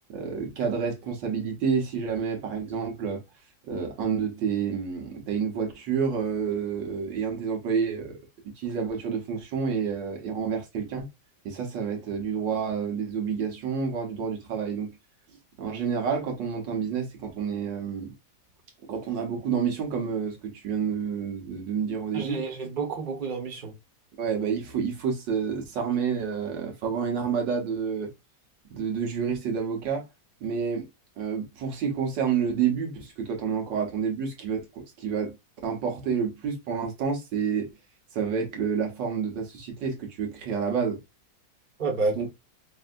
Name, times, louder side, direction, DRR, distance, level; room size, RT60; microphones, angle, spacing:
voice 1, 0.1-3.2 3.6-8.1 8.4-11.1 11.5-15.0 15.6-18.1 18.9-22.4 24.2-28.1 28.7-30.0 30.4-30.9 31.2-35.3 35.6-37.7 38.1-41.0 42.2-42.3, right 6 dB, 85° right, 1.8 m, -29 dB
voice 2, 22.1-23.7 41.8-42.2, right 4 dB, 30° right, 1.2 m, -29 dB
5.3 x 2.7 x 2.5 m
omnidirectional pair, 1.9 m